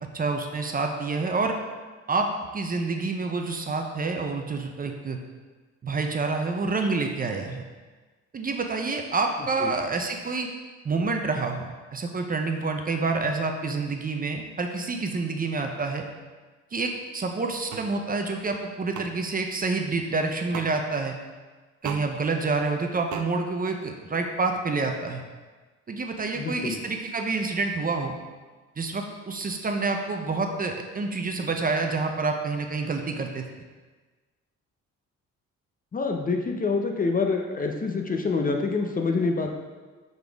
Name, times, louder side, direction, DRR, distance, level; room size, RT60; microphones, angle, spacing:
voice 1, 0.1-1.6 2.1-5.2 5.8-7.6 8.3-10.5 10.8-16.0 16.7-21.2 21.8-25.2 25.9-28.2 28.8-33.4, right 3 dB, 30° right, 4 dB, 0.6 m, -28 dB
sound 1, 17.7-17.9 18.9-19.1 20.5-20.7 21.8-22.0 23.1-23.3, right 8 dB, 75° right, 0.6 m, -34 dB
voice 2, 26.3-26.8 35.9-39.6, left 4 dB, 30° left, 2 dB, 0.6 m, -26 dB
6.7 x 4.0 x 3.5 m, 1.3 s
cardioid pair, 90°, 30 cm